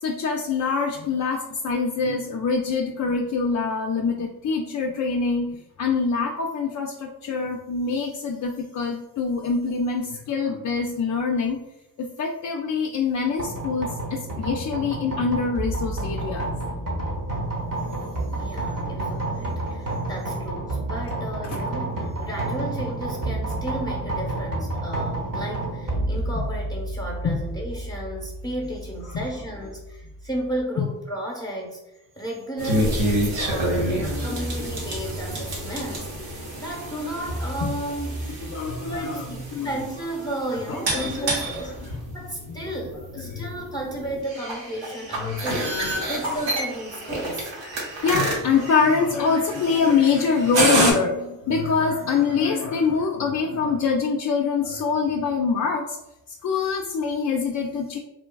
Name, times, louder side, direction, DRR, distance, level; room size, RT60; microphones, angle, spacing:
voice 1, 0.0-11.7 12.0-16.6 21.4-21.6 26.4-26.5 27.2-27.4 29.1-29.2 30.8-30.9 34.1-34.5 35.8-35.9 37.6-37.7 38.5-39.2 39.5-39.7 40.7-41.3 42.5-42.6 43.2-43.5 45.2-45.4 48.0-56.0 56.4-58.0, left 5 dB, 40° left, 1 dB, 0.4 m, -25 dB
sound 1, 13.4-30.6, right 2 dB, 45° right, 1.1 m, -30 dB
voice 2, 18.3-31.8 32.2-41.8 42.1-45.8 46.0-47.6, right 1 dB, 10° left, -2 dB, 0.9 m, -33 dB
sound 2, 32.6-50.9, right 1 dB, 70° right, 1.0 m, -28 dB
3.2 x 2.3 x 2.2 m, 0.92 s
supercardioid pair, 40°, 46 cm